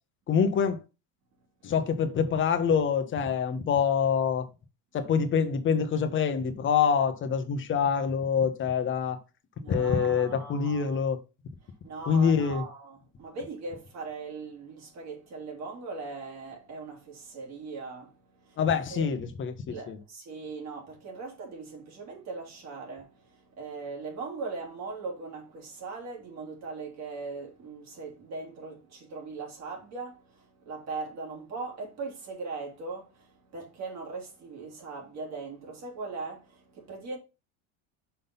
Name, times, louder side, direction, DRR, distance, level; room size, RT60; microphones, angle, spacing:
voice 1, 0.3-0.8 1.6-4.5 4.9-9.2 9.7-11.2 12.1-12.6 18.6-20.0, left 6 dB, 30° left, 1.1 m, -26 dB
voice 2, 9.6-11.0 11.8-19.1 19.7-37.2, right 4 dB, 40° right, 2.8 m, -40 dB
5.7 x 3.9 x 5.3 m
supercardioid pair, 140°, 41 cm